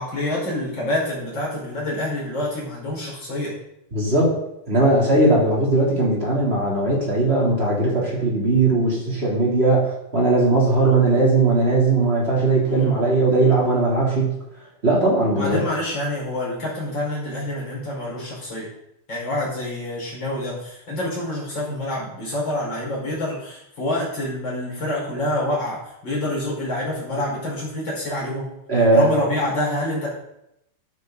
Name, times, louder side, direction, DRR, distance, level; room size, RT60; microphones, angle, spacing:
voice 1, 0.0-3.5 12.7-13.6 15.3-18.7 19.1-28.5 28.9-30.1, left 1 dB, 25° left, -5 dB, 5.4 m, -27 dB
voice 2, 3.9-4.3 4.7-14.3 14.8-15.6 28.7-29.1, right 2 dB, 15° right, -4 dB, 2.9 m, -19 dB
13.0 x 9.3 x 4.1 m, 0.81 s
omnidirectional pair, 5.2 m